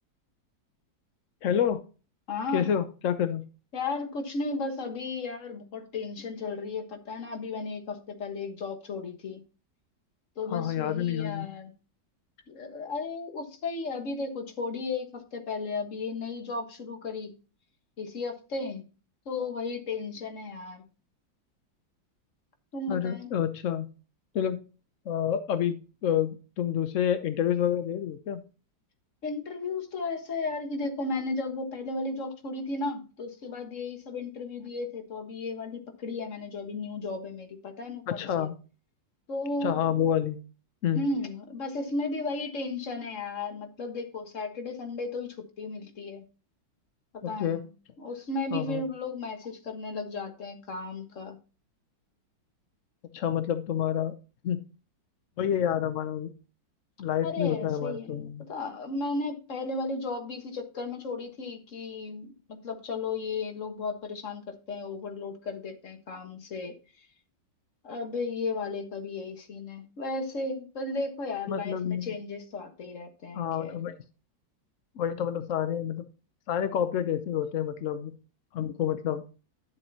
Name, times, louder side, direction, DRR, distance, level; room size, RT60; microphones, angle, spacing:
voice 1, 1.4-1.8 2.5-3.5 10.5-11.5 22.9-23.9 24.3-24.6 25.1-28.4 38.1-38.5 39.6-40.4 40.8-41.0 47.2-47.6 48.5-48.8 53.1-54.1 54.4-54.6 55.4-56.3 57.0-58.5 71.5-72.1 73.3-73.9 75.0-76.0 76.5-78.1 78.5-79.2, left 9 dB, 65° left, 0.8 m, -28 dB
voice 2, 2.3-2.7 3.7-9.4 10.4-11.7 12.5-17.3 18.0-18.8 19.2-20.8 22.7-23.3 29.2-38.5 39.3-39.9 40.9-46.2 47.1-47.7 48.0-51.4 57.2-67.1 67.8-73.8, left 3 dB, 45° left, 1.6 m, -34 dB
11.0 x 7.2 x 2.8 m
omnidirectional pair, 2.1 m